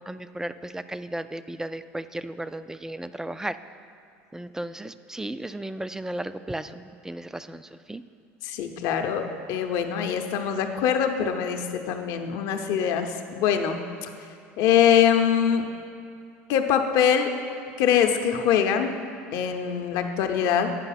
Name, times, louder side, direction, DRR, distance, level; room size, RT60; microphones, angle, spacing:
voice 1, 0.0-3.6 4.3-8.0, right 1 dB, 5° right, 12 dB, 0.3 m, -35 dB
voice 2, 8.4-14.1 14.6-15.6 16.5-17.3 17.8-18.9 19.3-20.7, left 8 dB, 65° left, 6 dB, 0.7 m, -23 dB
9.1 x 5.3 x 5.7 m, 2.5 s
hypercardioid pair, 80°, 7 cm